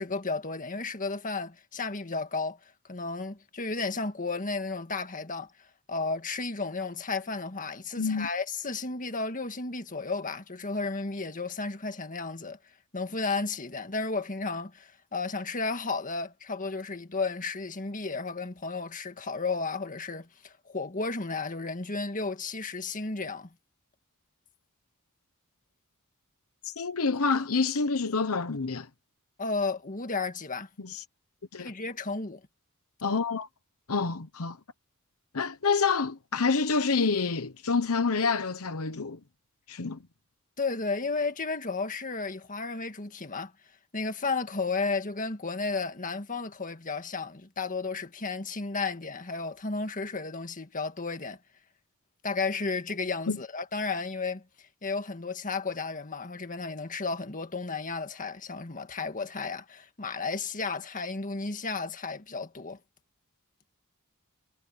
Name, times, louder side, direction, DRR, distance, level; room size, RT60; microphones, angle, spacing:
voice 1, 0.0-2.6 2.9-5.5 5.9-12.6 12.9-23.5 29.4-30.7 31.6-32.4 40.6-43.5 43.9-51.4 52.2-62.8, left 4 dB, 35° left, 1.8 m, -33 dB
voice 2, 8.0-8.3 26.6-28.9 30.8-31.0 31.5-31.7 33.0-33.5 33.9-34.6 35.3-39.2 39.7-40.0 53.3-53.4, left 4 dB, 75° left, 1.0 m, -27 dB
head